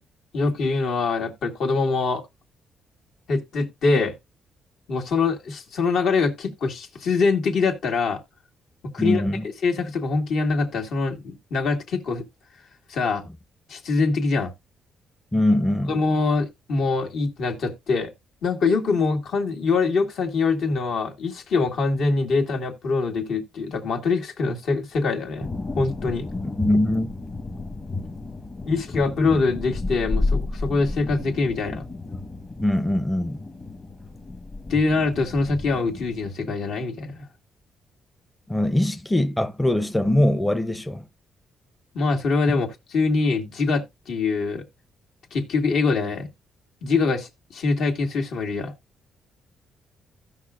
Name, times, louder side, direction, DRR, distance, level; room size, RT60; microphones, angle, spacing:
voice 1, 0.3-2.2 3.3-4.1 4.9-8.2 8.9-9.2 9.6-12.2 12.9-13.2 13.7-14.5 15.9-18.1 18.4-25.5 25.8-26.3 28.7-31.8 34.7-37.2 41.9-44.6 45.3-46.3 46.8-48.7, left 4 dB, 75° left, 2.2 m, -24 dB
voice 2, 9.0-9.5 15.3-16.0 26.6-27.1 32.6-33.4 38.5-41.0 42.5-42.6, left 1 dB, 10° left, 0.6 m, -22 dB
sound 1, 25.4-36.3, left 2 dB, 30° left, 1.2 m, -32 dB
16.0 x 5.7 x 2.4 m
cardioid pair, 115°, 0 cm